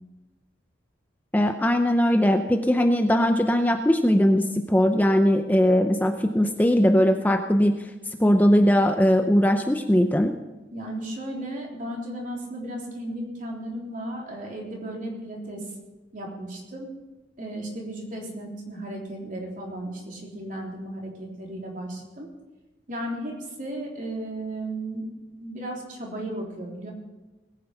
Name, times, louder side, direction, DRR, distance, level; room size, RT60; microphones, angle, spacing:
voice 1, 1.3-7.9 8.2-10.4, equal, 10° left, 5 dB, 0.6 m, -20 dB
voice 2, 10.7-15.7 16.1-16.9 17.4-22.3 22.9-25.1 25.4-26.9, right 1 dB, 45° right, -1 dB, 3.5 m, -35 dB
20.0 x 9.3 x 5.8 m, 1.1 s
head